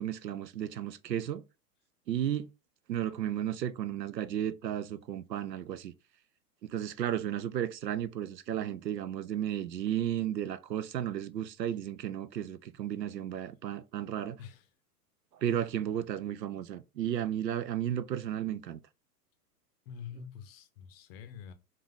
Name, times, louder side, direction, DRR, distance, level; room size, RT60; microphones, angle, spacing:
voice 1, 0.0-1.4 2.1-2.5 2.9-5.9 6.6-14.4 15.4-18.8, right 10 dB, 85° right, 0.6 m, -34 dB
voice 2, 19.9-21.5, left 7 dB, 35° left, 0.6 m, -46 dB
3.8 x 2.5 x 3.7 m
hypercardioid pair, 110°, 49 cm